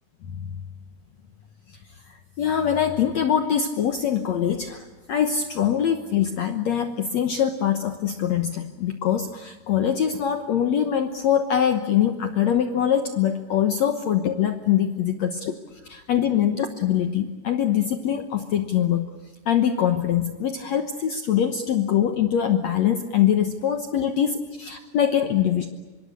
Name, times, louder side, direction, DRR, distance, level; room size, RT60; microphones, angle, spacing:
voice 1, 2.1-15.3 15.8-19.1 19.4-25.8, left 9 dB, 85° left, 7 dB, 1.5 m, -23 dB
25.5 x 24.0 x 8.4 m, 1.3 s
omnidirectional pair, 4.9 m